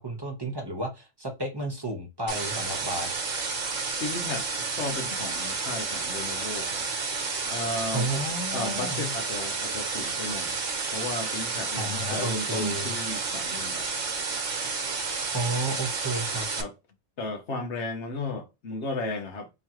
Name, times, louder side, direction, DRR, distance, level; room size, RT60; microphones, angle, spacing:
voice 1, 0.0-3.1 7.9-9.0 11.8-12.9 15.3-16.5, right 1 dB, 20° right, 1.0 m, -32 dB
sound 1, 2.3-16.6, right 4 dB, 85° right, 1.3 m, -31 dB
voice 2, 4.0-4.5 4.7-6.8 7.5-8.3 8.5-10.6 10.9-13.9 16.6-16.7 17.2-19.5, left 2 dB, 65° left, 1.2 m, -34 dB
3.9 x 3.1 x 3.0 m
omnidirectional pair, 1.3 m